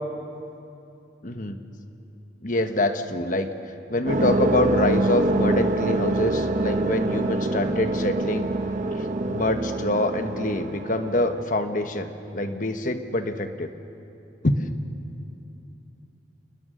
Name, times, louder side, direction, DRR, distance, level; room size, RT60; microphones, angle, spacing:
voice 1, 1.2-1.6 2.4-3.5 3.9-8.5 8.9-13.7 14.4-14.7, left 2 dB, 45° left, 7 dB, 1.2 m, -25 dB
sound 1, 4.1-11.4, right 2 dB, 45° right, 1.0 m, -25 dB
28.5 x 20.5 x 6.5 m, 2.7 s
head